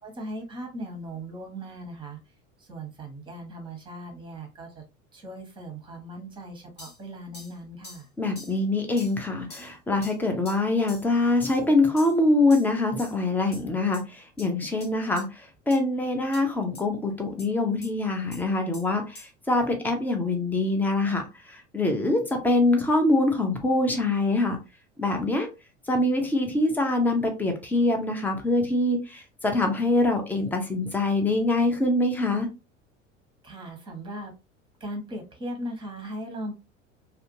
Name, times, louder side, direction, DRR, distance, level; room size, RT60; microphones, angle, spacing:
voice 1, 0.0-2.2 2.6-4.8 5.1-8.1 33.4-34.3 34.8-36.5, right 1 dB, 10° right, 0.9 m, -38 dB
sound 1, 6.8-7.0 7.3-7.5 7.8-8.0 8.3-8.5 9.0-9.2 9.5-9.7 10.0-10.1 10.4-10.6 10.9-11.1 11.4-11.6 12.0-12.2 12.5-12.7 13.0-13.2 13.5-13.6 13.9-14.0 14.4-14.5 14.8-14.9 15.2-15.3 15.7-15.8 16.3-16.4 16.7-16.8 17.4-17.5 17.8-17.9 18.3-18.4 18.7-18.9 19.1-19.3, left 2 dB, 25° left, 1.0 m, -44 dB
voice 2, 8.2-24.6 25.0-25.5 25.9-32.5, left 2 dB, 5° left, 0.4 m, -24 dB
2.5 x 2.3 x 2.6 m
figure-of-eight pair, 75°, 38 cm